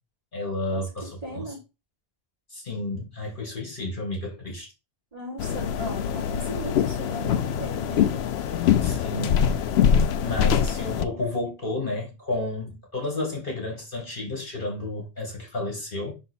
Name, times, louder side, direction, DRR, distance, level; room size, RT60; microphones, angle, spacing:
voice 1, 0.3-1.5 2.5-4.7 8.8-9.4 10.2-16.1, left 2 dB, 55° left, 1.8 m, -31 dB
voice 2, 1.2-1.6 5.1-8.2, right 1 dB, 40° right, 3.6 m, -37 dB
sound 1, 5.4-11.0, left 8 dB, 90° left, 0.9 m, -23 dB
5.7 x 3.9 x 4.3 m
omnidirectional pair, 1.0 m